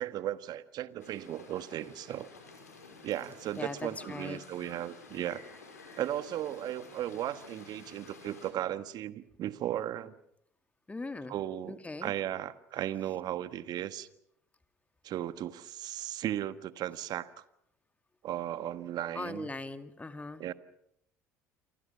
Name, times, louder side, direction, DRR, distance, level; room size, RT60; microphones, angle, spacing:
voice 1, 0.0-2.3 3.0-5.4 6.0-10.1 11.3-14.1 15.0-17.4 18.2-19.5 20.4-20.5, right 12 dB, 55° right, 1.4 m, -36 dB
sound 1, 1.0-8.5, left 4 dB, 90° left, 5.3 m, -51 dB
voice 2, 3.6-4.4 10.9-11.4 11.7-12.1 19.1-20.4, left 3 dB, 15° left, 2.2 m, -40 dB
29.0 x 25.0 x 5.7 m
hypercardioid pair, 60°, 8 cm